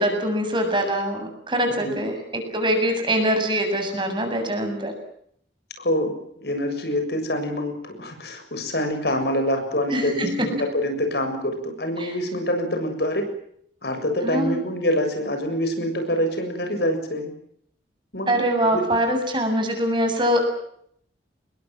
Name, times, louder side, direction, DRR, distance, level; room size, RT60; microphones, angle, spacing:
voice 1, 0.0-4.9 9.9-10.3 12.0-12.2 14.2-14.6 18.3-20.5, equal, 25° right, 5 dB, 7.6 m, -23 dB
voice 2, 1.7-2.0 5.8-13.3 13.8-17.3 18.1-18.3 18.7-18.8, left 1 dB, 65° left, 6 dB, 7.0 m, -25 dB
28.5 x 22.0 x 7.6 m, 0.68 s
head